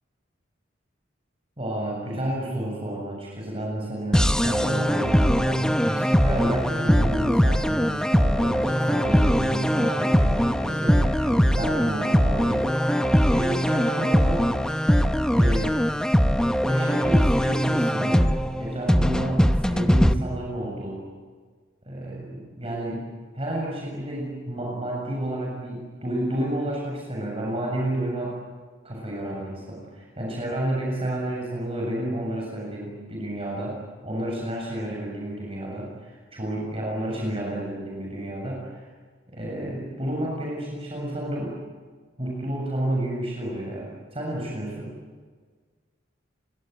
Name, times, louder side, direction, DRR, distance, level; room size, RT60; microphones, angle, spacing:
voice 1, 1.6-12.8 13.3-14.8 15.3-15.8 16.6-21.0 21.8-28.4 28.8-38.9 39.3-41.5 42.2-44.9, right 1 dB, 30° right, -3 dB, 7.4 m, -31 dB
sound 1, 4.1-20.1, equal, 5° left, 0.9 m, -21 dB
29.5 x 25.0 x 8.0 m, 1.5 s
head